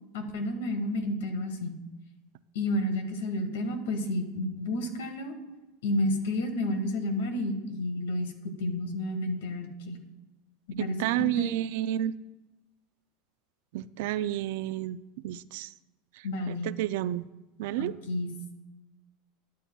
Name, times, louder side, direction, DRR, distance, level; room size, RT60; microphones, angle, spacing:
voice 1, 0.1-1.7 2.5-5.3 5.8-10.0 10.8-11.5 16.2-16.8 17.8-18.3, left 1 dB, 85° left, 7 dB, 1.4 m, -31 dB
voice 2, 10.8-12.1 13.7-15.0 15.2-15.7 16.5-17.3 17.6-17.9, right 13 dB, 70° right, 16 dB, 0.3 m, -30 dB
12.5 x 9.5 x 2.3 m, 1.1 s
supercardioid pair, 120°, 0 cm